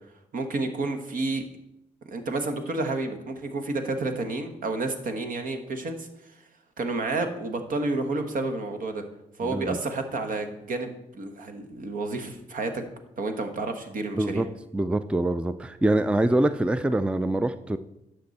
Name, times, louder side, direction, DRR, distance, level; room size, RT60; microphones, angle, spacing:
voice 1, 0.3-1.4 2.0-6.3 6.8-9.0 9.4-12.9 13.2-14.5, right 2 dB, 60° right, 7 dB, 1.3 m, -30 dB
voice 2, 9.4-9.8 14.2-14.5 14.7-17.8, right 1 dB, 5° right, 12 dB, 0.4 m, -24 dB
11.5 x 6.4 x 4.1 m, 0.87 s
cardioid pair, 65°, 16 cm